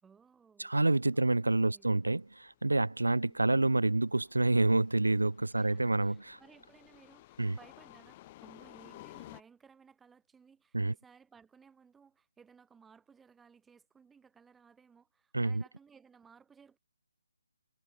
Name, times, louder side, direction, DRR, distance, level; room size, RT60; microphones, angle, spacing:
voice 1, 0.0-0.7 1.1-1.9 3.2-3.6 5.5-16.8, right 6 dB, 5° right, 2.3 m, -60 dB
voice 2, 0.6-6.4 7.4-7.6 10.7-10.9 15.3-15.6, right 2 dB, 85° right, 0.7 m, -28 dB
sound 1, 0.9-9.4, left 17 dB, 25° left, 1.0 m, -55 dB
figure-of-eight pair, 150°, 0 cm